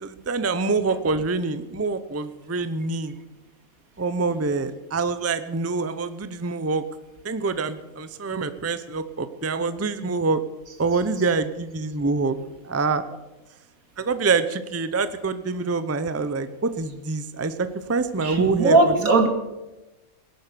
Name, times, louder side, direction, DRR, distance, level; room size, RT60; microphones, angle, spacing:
voice 1, 0.0-3.2 4.0-6.8 7.2-10.4 10.8-12.4 12.6-13.0 14.0-18.9, right 4 dB, 15° right, 12 dB, 0.6 m, -25 dB
voice 2, 18.2-19.3, right 3 dB, 80° right, 6 dB, 2.5 m, -19 dB
19.0 x 11.0 x 6.9 m, 1.0 s
omnidirectional pair, 1.5 m